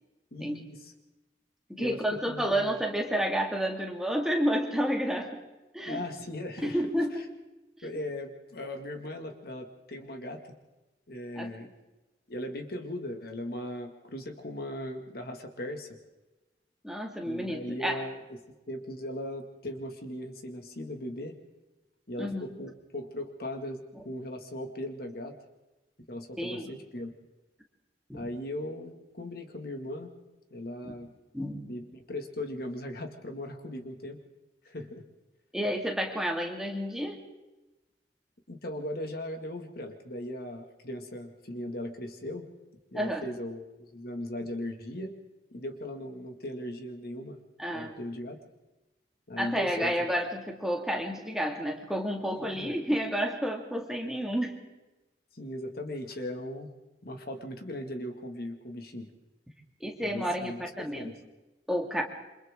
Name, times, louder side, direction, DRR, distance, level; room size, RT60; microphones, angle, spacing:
voice 1, 0.3-0.9 1.8-2.8 5.9-6.8 7.1-7.2 7.8-10.4 11.1-11.7 12.3-15.9 17.2-18.2 18.7-21.3 22.1-25.4 26.1-27.1 28.1-30.1 30.5-31.1 31.7-34.2 34.6-35.0 38.5-42.5 42.9-45.1 45.5-47.4 47.7-48.4 49.3-50.1 52.3-52.7 55.3-56.7 57.0-59.1 60.0-61.1, left 1 dB, 60° left, 5 dB, 2.1 m, -38 dB
voice 2, 1.7-5.3 5.7-6.0 6.6-7.1 7.8-7.9 11.4-11.5 16.8-18.0 22.2-22.5 26.4-26.7 28.1-28.3 30.8-30.9 31.3-31.7 35.5-37.2 42.9-43.2 47.6-47.9 49.4-54.6 59.8-61.1 61.7-62.0, equal, 5° right, 1 dB, 2.3 m, -30 dB
28.5 x 25.5 x 3.8 m, 1.1 s
head